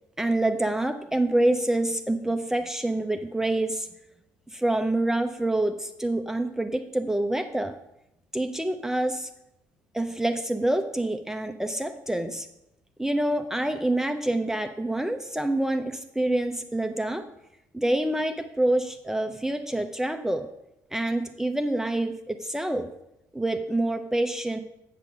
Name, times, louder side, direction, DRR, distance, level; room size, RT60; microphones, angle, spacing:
voice 1, 0.2-3.9 4.5-7.7 8.3-9.3 9.9-12.5 13.0-17.3 17.7-20.5 20.9-22.9 23.3-24.6, right 1 dB, 5° right, 6 dB, 0.8 m, -26 dB
8.3 x 6.6 x 5.1 m, 0.84 s
figure-of-eight pair, 50°, 9 cm